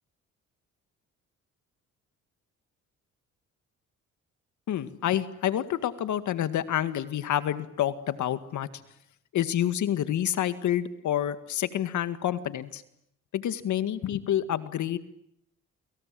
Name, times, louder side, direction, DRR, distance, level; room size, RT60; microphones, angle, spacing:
voice 1, 4.7-8.7 9.3-12.8 13.3-15.0, left 11 dB, 75° left, 11 dB, 2.0 m, -28 dB
30.0 x 26.0 x 7.7 m, 0.74 s
cardioid pair, 90°, 30 cm